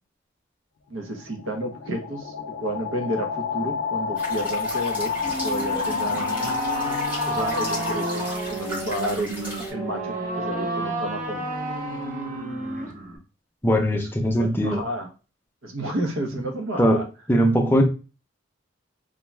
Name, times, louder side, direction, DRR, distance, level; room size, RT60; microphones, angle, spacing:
sound 1, 0.9-8.7, left 5 dB, 70° left, 0.4 m, -29 dB
voice 1, 0.9-2.3 2.6-6.6 7.3-11.5 13.9-14.1 14.4-15.1 15.6-17.1, right 1 dB, 75° right, 0.7 m, -31 dB
sound 2, 4.1-9.7, equal, 10° right, 1.0 m, -36 dB
sound 3, 5.2-13.2, right 2 dB, 40° right, 0.6 m, -31 dB
voice 2, 13.6-14.8 16.8-17.0 17.3-17.8, equal, 10° left, 0.4 m, -20 dB
2.5 x 2.2 x 3.1 m
head